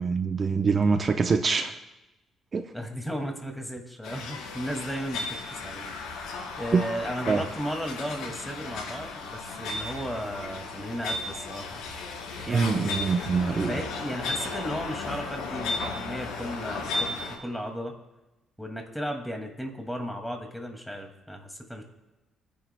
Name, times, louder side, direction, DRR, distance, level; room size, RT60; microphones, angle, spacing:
voice 1, 0.0-1.8 2.5-2.6 6.7-6.8 7.3-7.4 12.5-13.8, right 5 dB, 40° right, 6 dB, 0.7 m, -24 dB
voice 2, 2.7-11.8 12.4-13.1 13.6-18.0 18.6-21.8, equal, 5° left, 3 dB, 2.3 m, -35 dB
sound 1, 4.0-17.3, left 3 dB, 90° left, 4.1 m, -35 dB
29.5 x 10.0 x 2.3 m, 1.0 s
cardioid pair, 90°, 0 cm